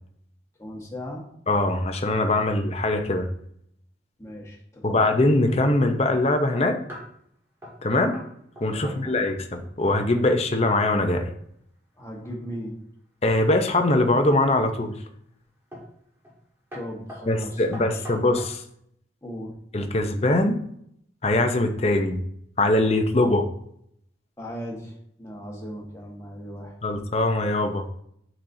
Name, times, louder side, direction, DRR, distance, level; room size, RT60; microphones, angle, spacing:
voice 1, 0.6-1.3 4.2-5.1 8.7-9.1 12.0-12.8 16.7-18.1 19.2-19.6 24.4-26.8, equal, 15° left, -2 dB, 1.4 m, -38 dB
voice 2, 1.5-3.3 4.8-6.8 7.8-8.2 8.6-11.3 13.2-15.0 17.3-18.6 19.7-20.6 21.2-22.2 22.6-23.5 26.8-27.8, left 2 dB, 35° left, 5 dB, 0.7 m, -22 dB
sound 1, 6.3-7.2 7.6-7.8 8.1-8.3 8.6-9.3 9.5-9.9 13.3-13.9 14.5-14.9 15.7-16.0 16.2-16.4 16.7-18.6, equal, 15° right, 1.6 m, -42 dB
8.7 x 4.2 x 2.7 m, 0.70 s
head